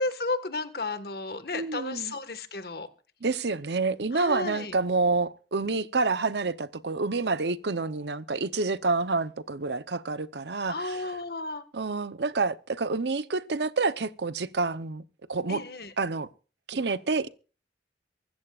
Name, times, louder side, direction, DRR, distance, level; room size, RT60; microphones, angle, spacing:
voice 1, 0.0-2.9 4.1-4.7 10.7-11.6 15.5-15.9, left 3 dB, 60° left, 1.6 m, -33 dB
voice 2, 1.5-2.1 3.2-11.0 11.7-15.0 15.3-15.6 16.0-16.3 16.7-17.3, right 3 dB, 75° right, 0.8 m, -28 dB
24.0 x 13.5 x 2.4 m
head